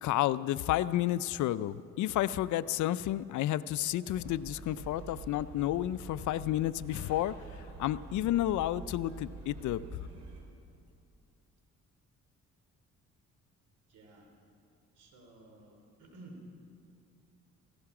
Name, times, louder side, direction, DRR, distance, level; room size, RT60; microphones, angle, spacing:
voice 1, 0.0-7.3 7.8-9.8, left 13 dB, 75° left, 16 dB, 0.5 m, -31 dB
sound 1, 4.0-10.4, right 3 dB, 65° right, 3.0 m, -47 dB
voice 2, 13.9-14.3 14.9-16.5, right 2 dB, 85° right, 2 dB, 3.2 m, -53 dB
17.0 x 15.5 x 4.9 m, 2.5 s
cardioid pair, 90°, 30 cm